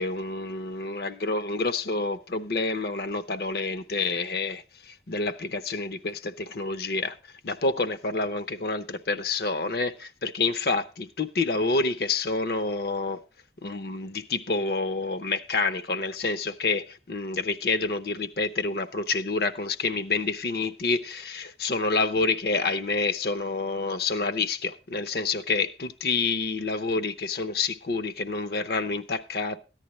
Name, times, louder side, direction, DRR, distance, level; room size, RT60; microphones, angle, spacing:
voice 1, 0.0-7.2 7.4-13.2 13.6-29.6, left 3 dB, 60° left, 0.7 m, -28 dB
14.5 x 10.0 x 3.1 m
head